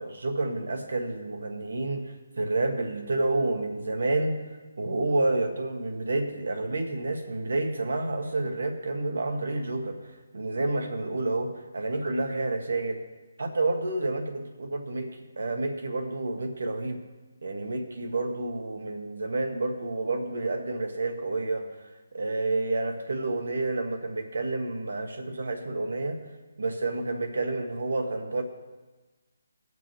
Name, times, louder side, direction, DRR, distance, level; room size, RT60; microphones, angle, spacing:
voice 1, 0.0-4.4 4.8-10.1 10.3-13.0 13.4-17.0 17.4-21.7 22.1-26.2 26.6-28.4, right 2 dB, 75° right, 5 dB, 1.7 m, -29 dB
20.0 x 6.8 x 3.5 m, 1.2 s
hypercardioid pair, 155°, 0 cm